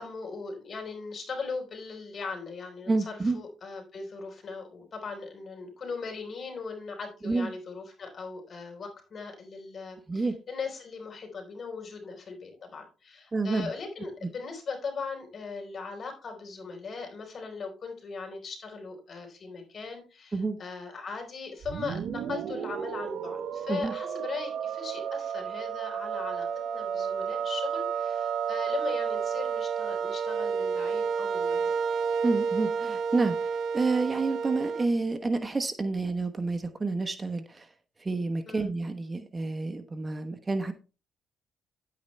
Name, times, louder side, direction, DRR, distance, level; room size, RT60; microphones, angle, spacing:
voice 1, 0.0-31.8 38.5-38.7, left 4 dB, 45° left, 4 dB, 4.3 m, -39 dB
voice 2, 2.9-3.4 7.2-7.5 10.1-10.3 13.3-13.7 20.3-20.6 23.7-23.9 32.2-37.7 38.0-40.7, right 3 dB, 25° right, 8 dB, 1.1 m, -29 dB
sound 1, 21.6-34.9, right 6 dB, 65° right, 0.8 m, -31 dB
10.5 x 8.7 x 3.3 m, 0.33 s
cardioid pair, 90°, 0 cm